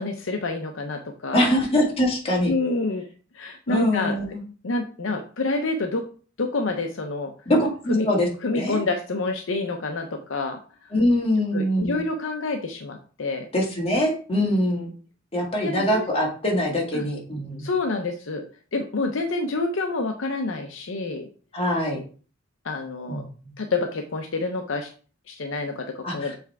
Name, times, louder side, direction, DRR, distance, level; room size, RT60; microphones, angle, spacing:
voice 1, 0.0-1.4 2.5-3.0 3.3-4.2 4.6-6.0 6.4-7.3 7.9-8.1 8.4-10.6 11.5-13.5 15.6-16.0 16.9-17.0 17.6-18.4 18.7-21.3 22.6-23.2 23.6-24.9 25.3-26.4, left 3 dB, 65° left, 5 dB, 0.7 m, -28 dB
voice 2, 1.3-2.5 3.7-4.4 7.5-8.3 8.5-8.8 10.9-12.0 13.5-14.9 15.3-17.7 21.5-22.0 23.1-23.3 26.0-26.3, left 1 dB, 30° left, -1 dB, 1.9 m, -23 dB
7.1 x 3.4 x 4.6 m, 0.39 s
head